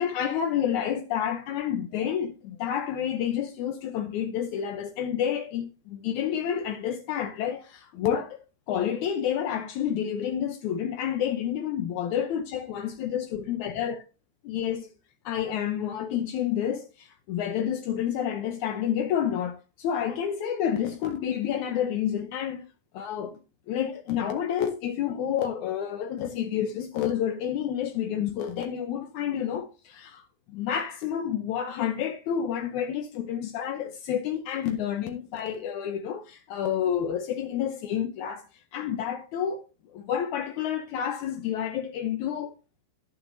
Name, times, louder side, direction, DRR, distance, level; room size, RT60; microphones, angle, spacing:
voice 1, 0.0-8.4 8.7-14.0 14.4-14.9 15.2-22.6 22.9-23.4 23.7-38.5 38.7-39.6 39.9-42.5, left 9 dB, 85° left, 1.7 m, -29 dB
12.0 x 11.0 x 2.7 m
omnidirectional pair, 4.6 m